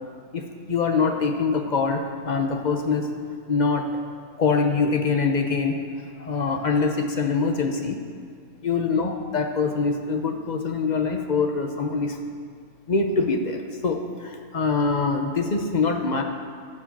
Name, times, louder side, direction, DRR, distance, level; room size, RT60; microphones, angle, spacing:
voice 1, 0.7-3.1 3.5-3.9 4.4-5.8 6.2-8.0 8.6-12.2 12.9-16.2, left 4 dB, 35° left, 4 dB, 0.8 m, -24 dB
14.5 x 4.9 x 7.4 m, 2.2 s
omnidirectional pair, 1.7 m